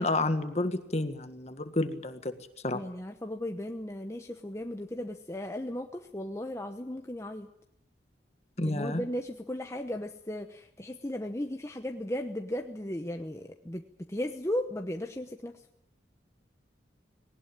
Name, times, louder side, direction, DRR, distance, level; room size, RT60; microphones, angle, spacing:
voice 1, 0.0-2.3 2.6-2.8 8.6-9.0, left 2 dB, 35° left, 9 dB, 1.7 m, -30 dB
voice 2, 2.7-7.5 8.6-15.7, left 1 dB, 15° left, 4 dB, 1.0 m, -36 dB
19.5 x 18.5 x 9.1 m, 0.76 s
head